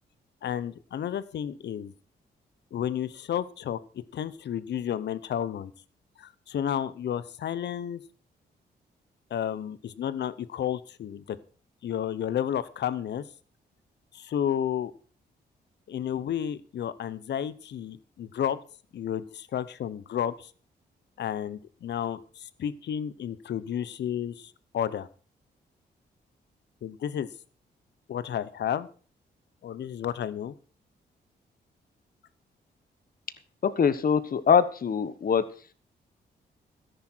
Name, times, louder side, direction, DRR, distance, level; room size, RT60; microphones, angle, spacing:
voice 1, 0.4-1.9 2.7-3.8 4.1-5.7 6.2-8.0 9.3-11.4 11.8-13.2 14.1-14.9 15.9-18.6 18.9-20.5 21.2-25.1 26.8-27.3 28.1-28.9 29.6-30.5, left 9 dB, 70° left, 16 dB, 0.9 m, -31 dB
voice 2, 33.6-35.4, left 7 dB, 50° left, 13 dB, 1.3 m, -23 dB
13.5 x 10.5 x 4.6 m, 0.40 s
cardioid pair, 70°, 18 cm